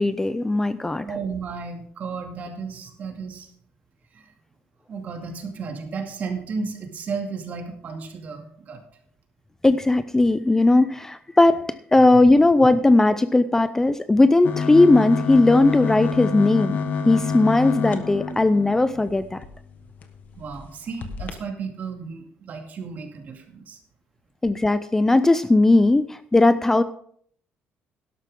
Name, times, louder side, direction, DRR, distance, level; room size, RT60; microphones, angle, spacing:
voice 1, 0.0-1.1 9.6-11.6 11.9-16.8 17.0-19.4 24.4-26.8, left 2 dB, 10° left, 13 dB, 0.4 m, -18 dB
voice 2, 0.8-3.5 4.1-4.3 4.9-8.8 12.1-12.2 20.3-23.8, right 5 dB, 45° right, 4 dB, 2.3 m, -33 dB
sound 1, 14.4-19.5 20.0-20.1 20.4-20.6 21.0-21.3, left 5 dB, 50° left, 1.4 m, -28 dB
12.0 x 12.0 x 3.7 m, 0.62 s
cardioid pair, 130°, 4 cm